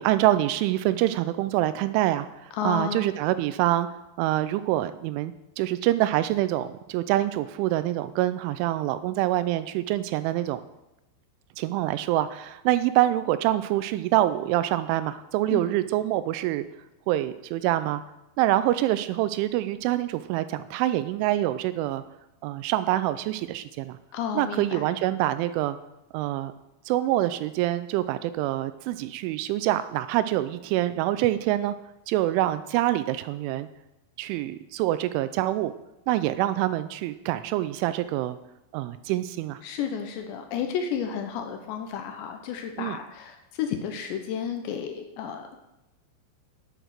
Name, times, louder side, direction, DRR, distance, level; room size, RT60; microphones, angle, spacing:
voice 1, 0.0-3.9 4.2-10.6 11.6-16.7 17.1-18.0 18.4-22.0 22.4-24.0 24.4-25.8 26.1-26.5 26.9-31.7 32.1-33.7 34.2-35.7 36.1-38.4 38.7-39.6 42.8-43.0, right 14 dB, 85° right, 13 dB, 2.9 m, -25 dB
voice 2, 2.5-3.1 15.5-15.7 24.1-24.9 39.6-45.5, left 8 dB, 75° left, 6 dB, 2.8 m, -32 dB
11.0 x 7.9 x 6.4 m, 0.93 s
omnidirectional pair, 5.7 m